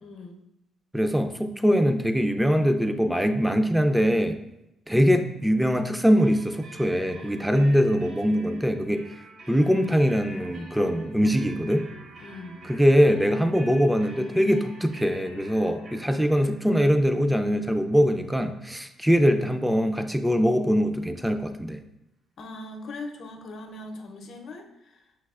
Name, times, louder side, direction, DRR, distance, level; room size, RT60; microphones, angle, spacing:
voice 1, 0.0-0.4 12.2-12.6 22.4-25.0, left 2 dB, 60° left, 3 dB, 0.6 m, -40 dB
voice 2, 0.9-4.4 4.9-9.1 9.5-11.9 12.6-21.8, equal, 5° right, 7 dB, 0.3 m, -22 dB
sound 1, 6.2-19.7, right 1 dB, 50° right, 0.8 m, -48 dB
5.7 x 3.2 x 2.3 m, 0.90 s
cardioid pair, 90°, 0 cm